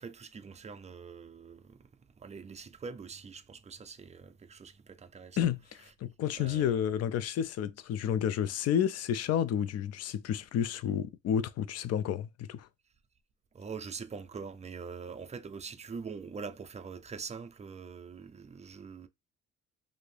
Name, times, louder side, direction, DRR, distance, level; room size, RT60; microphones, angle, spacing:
voice 1, 0.0-5.5 6.4-7.0 13.5-19.1, right 5 dB, 25° right, 0.4 m, -44 dB
voice 2, 6.0-12.7, left 9 dB, 55° left, 0.4 m, -30 dB
2.7 x 2.5 x 3.2 m
cardioid pair, 90°, 30 cm